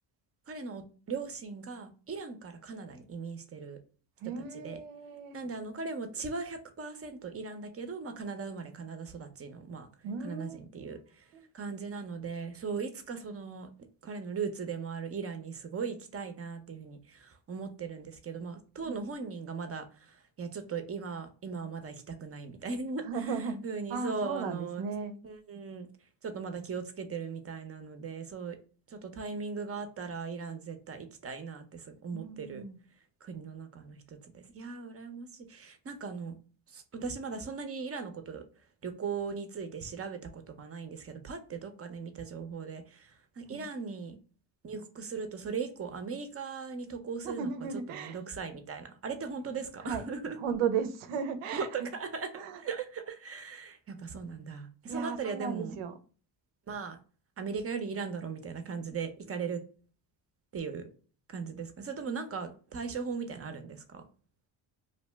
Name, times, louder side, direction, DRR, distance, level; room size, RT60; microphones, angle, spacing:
voice 1, 0.5-3.8 4.4-4.8 5.3-9.9 10.2-11.3 11.5-13.7 14.0-24.8 25.2-25.9 26.2-28.6 28.9-32.6 33.2-36.3 36.7-38.4 38.8-44.2 44.6-47.5 47.9-50.4 51.5-55.8 56.7-57.0 57.4-59.6 60.5-60.9 61.3-64.0, right 5 dB, 30° right, 0.5 m, -38 dB
voice 2, 4.2-5.4 10.0-10.6 11.3-11.5 18.8-19.0 23.1-23.6 23.9-25.2 32.1-32.8 43.5-43.7 47.2-48.2 49.8-50.0 50.4-51.9 52.3-52.6 54.9-55.9, right 6 dB, 85° right, 0.6 m, -35 dB
2.7 x 2.1 x 3.2 m
cardioid pair, 80°, 48 cm